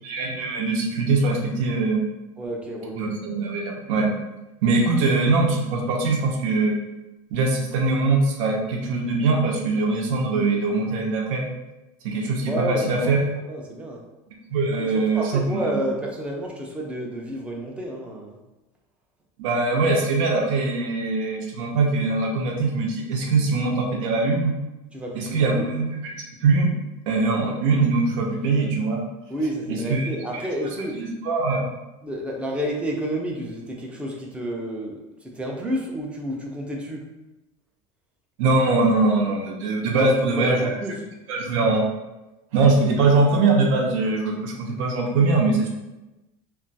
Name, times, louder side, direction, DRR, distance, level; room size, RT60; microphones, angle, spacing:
voice 1, 0.0-2.0 3.0-4.1 4.6-6.8 7.3-11.5 12.0-13.2 14.5-15.8 19.4-24.5 25.1-26.1 26.4-26.7 27.1-29.0 29.7-30.4 30.9-31.7 38.4-40.7 41.3-41.9 42.5-45.7, right 3 dB, 90° right, 0 dB, 0.7 m, -22 dB
voice 2, 2.4-3.0 12.5-13.1 13.5-14.0 14.8-18.4 24.9-25.7 29.3-31.0 32.0-37.1 40.0-40.9, right 1 dB, 5° right, -1 dB, 0.3 m, -30 dB
2.3 x 2.2 x 3.9 m, 1.0 s
cardioid pair, 165°, 16 cm